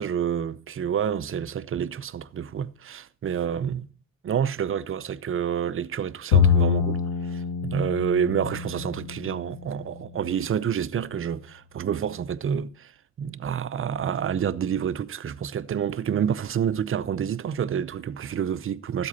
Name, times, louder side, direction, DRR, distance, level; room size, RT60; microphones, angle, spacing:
voice 1, 0.0-3.9 4.2-12.9 13.2-19.1, right 8 dB, 45° right, 0.7 m, -28 dB
Bowed string instrument, 6.3-9.7, left 6 dB, 85° left, 1.0 m, -24 dB
13.5 x 8.0 x 4.1 m
cardioid pair, 90°, 30 cm